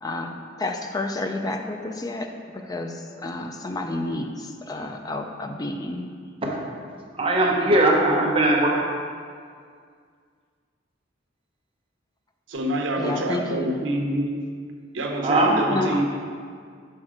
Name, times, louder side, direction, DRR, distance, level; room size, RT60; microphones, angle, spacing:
voice 1, 0.0-6.1 13.0-13.7 15.7-16.0, left 2 dB, 20° left, 4 dB, 0.4 m, -30 dB
voice 2, 7.1-8.8 15.2-15.5, right 1 dB, 30° right, -2 dB, 0.9 m, -19 dB
voice 3, 12.5-14.5 14.9-16.0, right 1 dB, 80° right, 2 dB, 0.8 m, -26 dB
6.3 x 4.2 x 4.9 m, 2.1 s
head